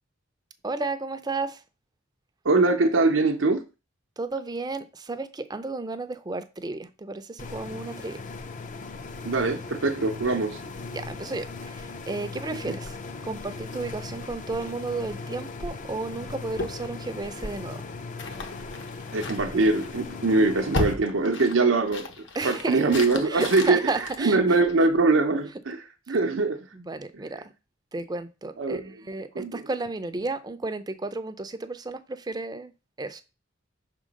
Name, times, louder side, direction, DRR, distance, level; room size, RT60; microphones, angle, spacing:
voice 1, 0.6-1.6 4.2-8.2 10.9-13.0 13.2-17.8 22.3-22.9 23.2-24.4 26.1-26.2 26.7-27.5 27.9-32.7 33.0-33.2, right 3 dB, 20° right, 0.5 m, -33 dB
voice 2, 2.4-3.6 9.2-10.6 12.7-12.8 19.1-22.1 22.4-23.8 24.2-25.8 26.1-26.6 28.6-28.8 29.4-29.6, right 3 dB, 75° right, 0.7 m, -22 dB
sound 1, 7.4-20.9, left 3 dB, 40° left, 0.5 m, -38 dB
sound 2, 16.6-25.0, left 2 dB, 65° left, 0.9 m, -36 dB
5.7 x 3.7 x 5.2 m
head